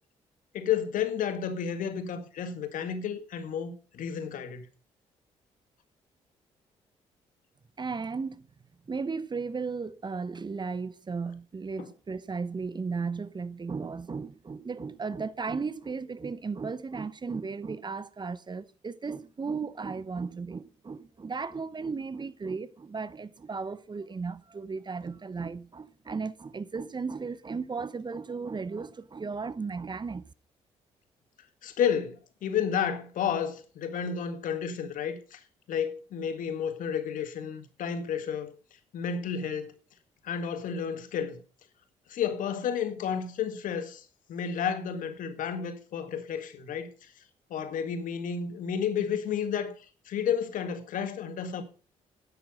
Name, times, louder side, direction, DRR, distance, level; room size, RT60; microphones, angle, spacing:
voice 1, 0.5-4.7 11.8-11.9 31.6-35.4 35.7-38.5 38.9-39.7 40.2-41.4 42.1-47.1 47.5-49.8 50.1-51.6, left 7 dB, 70° left, 1.9 m, -31 dB
voice 2, 7.8-8.5 8.9-30.3, right 4 dB, 30° right, 0.9 m, -35 dB
10.0 x 8.9 x 5.3 m
hypercardioid pair, 50°, 14 cm